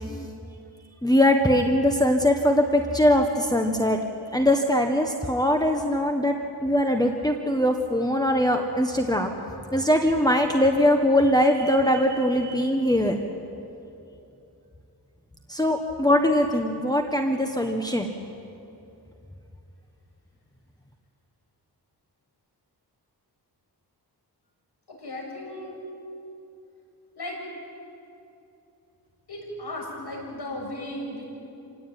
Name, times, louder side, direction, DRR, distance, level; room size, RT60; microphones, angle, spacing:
voice 1, 1.0-4.0 4.3-6.3 6.6-9.3 9.7-13.2 15.5-18.1, left 1 dB, 10° left, 3 dB, 1.4 m, -21 dB
voice 2, 24.9-25.7 27.2-27.4 29.3-31.2, left 1 dB, 75° left, -1 dB, 7.2 m, -35 dB
27.5 x 17.5 x 9.2 m, 2.7 s
wide cardioid pair, 80°, 40 cm